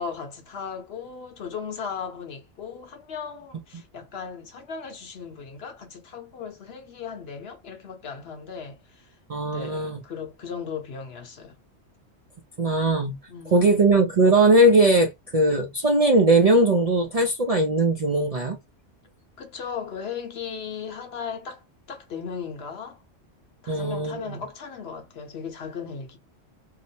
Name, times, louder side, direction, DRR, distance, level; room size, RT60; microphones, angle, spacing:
voice 1, 0.0-9.1 9.5-11.6 13.3-13.8 19.4-21.6 21.9-23.0 23.6-26.2, left 6 dB, 60° left, 0.9 m, -37 dB
voice 2, 9.3-10.0 12.6-13.2 13.5-18.6 23.7-24.4, right 2 dB, 50° right, 0.4 m, -20 dB
2.8 x 2.1 x 2.6 m
omnidirectional pair, 1.3 m